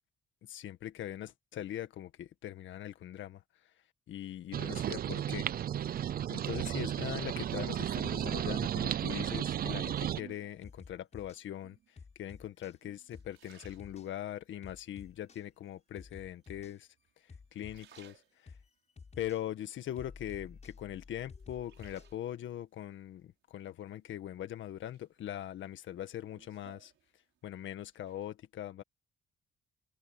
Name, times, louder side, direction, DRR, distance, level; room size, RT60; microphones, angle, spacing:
voice 1, 0.4-3.4 4.1-5.5 6.3-11.8 12.2-16.9 17.5-18.5 19.2-26.9 27.4-28.8, left 11 dB, 75° left, 1.7 m, -41 dB
sound 1, 4.5-10.2, right 10 dB, 50° right, 0.5 m, -34 dB
sound 2, 9.6-10.1 10.6-11.4 12.0-12.8 13.1-13.3 13.6-14.1 14.6-15.4 16.0-16.8 17.3-18.1 18.5-18.7 19.0-19.4 20.0-22.2, left 5 dB, 35° left, 7.8 m, -52 dB
sound 3, 9.7-10.8 11.5-12.0 12.6-14.5 15.0-15.6 16.4-17.1 17.4-18.8 19.3-20.5 20.9-22.5 23.9-24.5 24.9-27.5 27.8-28.3, right 11 dB, 75° right, 5.8 m, -61 dB
open air
cardioid pair, 90°, 20 cm